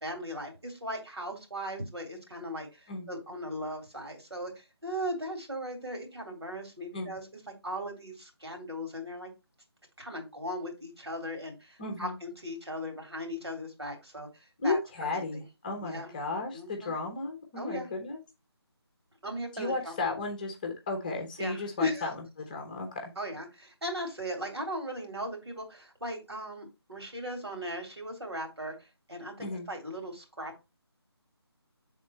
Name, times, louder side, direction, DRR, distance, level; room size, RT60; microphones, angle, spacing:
voice 1, 0.0-7.3 7.6-9.3 10.0-15.2 15.8-16.1 16.5-16.9 17.6-17.9 19.2-20.1 21.4-22.1 23.2-30.6, equal, 75° right, 2 dB, 2.5 m, -38 dB
voice 2, 11.8-12.2 14.6-18.2 19.5-22.1 22.5-23.1 29.4-29.7, left 3 dB, 20° left, 3 dB, 0.9 m, -34 dB
6.3 x 3.7 x 4.3 m, 0.26 s
figure-of-eight pair, 155°, 14 cm